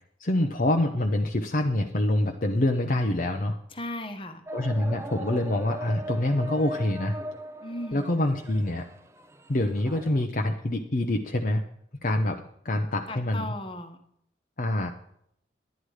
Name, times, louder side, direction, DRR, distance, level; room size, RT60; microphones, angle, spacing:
voice 1, 0.2-3.6 4.5-7.2 7.9-8.9 9.5-11.6 12.0-13.5 14.6-14.9, left 1 dB, 50° left, 3 dB, 0.8 m, -26 dB
voice 2, 3.7-4.4 7.6-8.2 13.1-14.0, left 1 dB, 30° left, 7 dB, 1.2 m, -36 dB
sound 1, 4.5-10.3, equal, 15° right, 0.6 m, -39 dB
11.0 x 10.0 x 4.9 m, 0.71 s
head